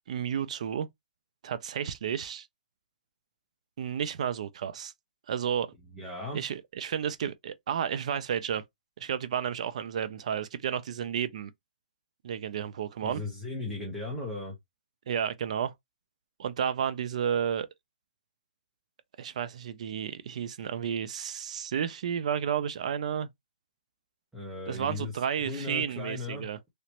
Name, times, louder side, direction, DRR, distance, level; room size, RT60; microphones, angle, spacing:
voice 1, 0.1-0.9 1.4-2.5 3.8-4.9 5.3-5.7 6.3-8.6 9.0-11.5 12.2-13.2 15.1-15.7 16.4-17.7 19.2-23.3 24.7-26.6, right 8 dB, 45° right, 0.5 m, -32 dB
voice 2, 5.9-6.4 13.0-14.6 24.3-26.5, left 2 dB, 5° right, 0.8 m, -37 dB
3.1 x 2.9 x 2.9 m
hypercardioid pair, 170°, 5 cm